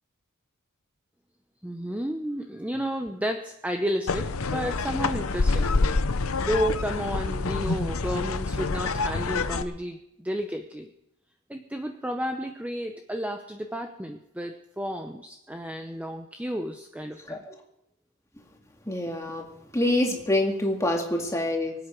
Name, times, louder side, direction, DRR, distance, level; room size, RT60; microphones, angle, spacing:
voice 1, 1.6-5.7 6.4-10.9 11.5-17.4, equal, 5° right, 5 dB, 0.7 m, -32 dB
sound 1, 4.1-9.6, left 3 dB, 70° left, 0.8 m, -27 dB
voice 2, 18.9-19.4 19.7-21.7, left 1 dB, 15° left, 1 dB, 2.1 m, -26 dB
24.0 x 8.7 x 5.2 m, 0.82 s
head